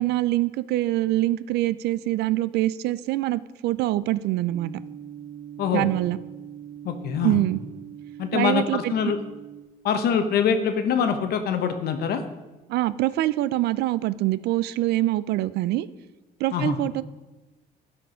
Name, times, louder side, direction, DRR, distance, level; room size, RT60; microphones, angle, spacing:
voice 1, 0.0-4.7 5.7-6.2 7.2-7.6 8.3-9.1 12.7-15.9 16.4-17.0, right 15 dB, 75° right, 17 dB, 0.4 m, -24 dB
sound 1, 4.5-9.6, right 10 dB, 60° right, 1.4 m, -42 dB
voice 2, 6.8-7.4 8.2-9.2 9.8-12.2 16.5-16.8, left 7 dB, 70° left, 8 dB, 1.0 m, -24 dB
12.5 x 4.5 x 5.0 m, 1.2 s
cardioid pair, 110°, 17 cm